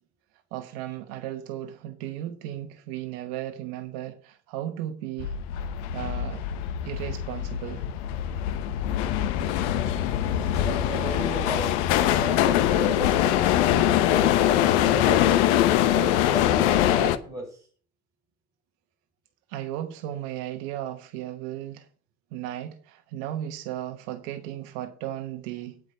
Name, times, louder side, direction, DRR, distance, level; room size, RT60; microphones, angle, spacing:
voice 1, 0.5-5.3 5.9-6.5 6.8-7.9 19.5-21.9 22.3-25.8, right 12 dB, 75° right, 1.2 m, -35 dB
sound 1, 5.2-17.2, left 11 dB, 80° left, 0.9 m, -23 dB
voice 2, 10.4-13.5 14.1-15.4 15.9-17.7, right 2 dB, 10° right, 6.2 m, -36 dB
9.4 x 5.0 x 7.8 m
supercardioid pair, 110°, 33 cm